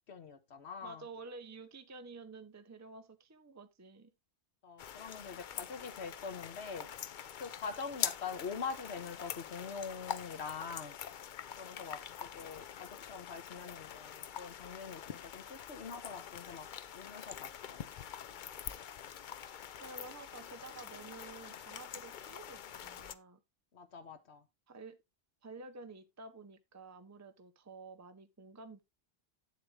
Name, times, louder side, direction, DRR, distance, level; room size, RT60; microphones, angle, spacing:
voice 1, 0.1-1.0 4.6-6.9 7.4-11.0 11.6-16.7 16.9-17.9 23.7-24.4, left 5 dB, 85° left, 1.5 m, -44 dB
voice 2, 0.8-4.1 19.3-19.4 19.7-23.4 24.7-25.0 25.4-28.8, right 3 dB, 20° right, 0.7 m, -51 dB
sound 1, 4.8-23.2, left 9 dB, 55° left, 0.7 m, -45 dB
8.7 x 7.7 x 3.2 m
omnidirectional pair, 1.1 m